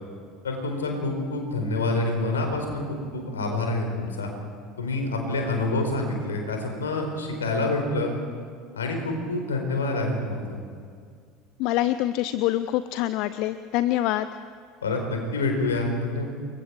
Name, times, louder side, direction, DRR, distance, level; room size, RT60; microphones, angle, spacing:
voice 1, 0.4-4.3 4.8-8.1 8.7-10.6 14.8-16.3, left 2 dB, 80° left, 3 dB, 4.5 m, -27 dB
voice 2, 11.6-14.3, left 14 dB, 55° left, 14 dB, 0.6 m, -25 dB
29.5 x 22.5 x 4.8 m, 2.2 s
figure-of-eight pair, 70°, 0 cm